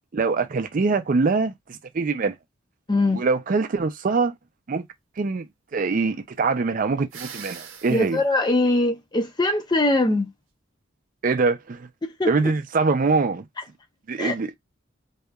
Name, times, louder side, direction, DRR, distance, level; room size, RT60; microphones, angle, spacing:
voice 1, 0.1-2.4 3.1-4.3 4.7-4.8 5.2-8.2 11.2-11.9 12.3-13.5 14.1-14.6, right 4 dB, 40° right, 0.4 m, -23 dB
voice 2, 2.9-3.2 7.9-10.3 12.0-12.5 14.2-14.3, left 2 dB, 20° left, 0.5 m, -22 dB
sound 1, 7.1-8.2, right 7 dB, 80° right, 0.7 m, -40 dB
2.7 x 2.3 x 2.3 m
head